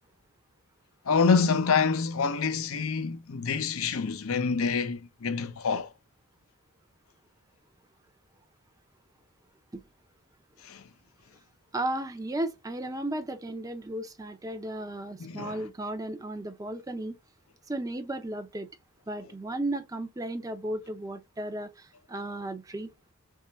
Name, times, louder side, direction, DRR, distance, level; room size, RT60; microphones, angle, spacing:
voice 1, 1.1-5.9 10.6-10.9 15.2-15.6, left 5 dB, 70° left, 0.6 m, -27 dB
voice 2, 11.7-17.2 17.7-18.7 19.1-23.1, right 1 dB, 15° right, 0.5 m, -35 dB
3.6 x 3.2 x 4.1 m
head